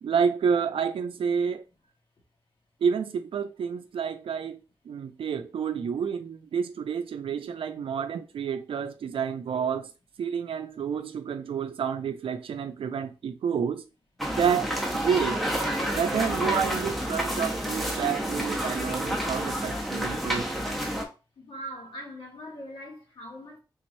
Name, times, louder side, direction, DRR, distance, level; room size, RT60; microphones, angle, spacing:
voice 1, 0.0-1.6 2.8-4.6 4.9-9.9 10.2-13.8 14.4-15.4 15.9-20.5, right 7 dB, 90° right, 0.4 m, -29 dB
sound 1, 14.2-21.0, right 1 dB, ahead, 0.7 m, -29 dB
voice 2, 21.4-23.6, equal, 70° left, 1.4 m, -41 dB
3.6 x 3.1 x 2.6 m
wide cardioid pair, 140°, 9 cm